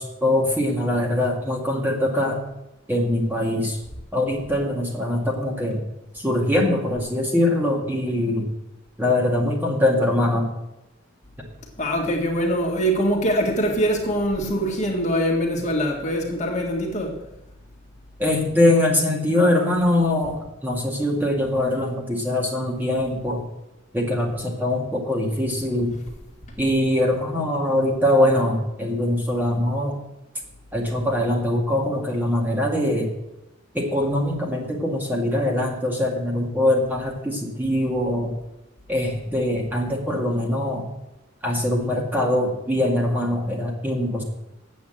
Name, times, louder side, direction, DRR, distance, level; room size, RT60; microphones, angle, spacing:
voice 1, 0.0-2.4 2.9-3.8 4.1-5.8 6.1-8.5 9.0-10.5 18.2-23.4 23.9-26.0 26.6-30.0 30.7-33.1 33.7-38.3 38.9-40.9 41.4-44.2, left 1 dB, 10° right, -1 dB, 2.0 m, -22 dB
voice 2, 11.8-17.2, equal, 35° left, 0 dB, 1.8 m, -23 dB
8.4 x 7.9 x 7.7 m, 0.95 s
head